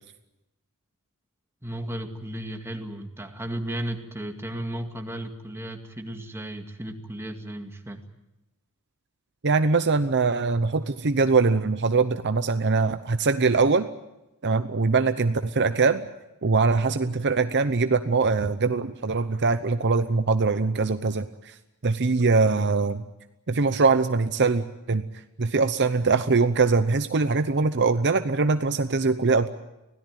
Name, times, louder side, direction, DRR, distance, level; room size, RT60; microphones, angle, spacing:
voice 1, 1.6-8.0, right 1 dB, 10° right, 4 dB, 2.1 m, -34 dB
voice 2, 9.4-13.9 14.4-16.0 16.4-21.5 21.8-23.0 23.5-25.0 25.4-29.5, right 4 dB, 50° right, 10 dB, 0.8 m, -22 dB
25.0 x 17.0 x 9.2 m, 0.96 s
head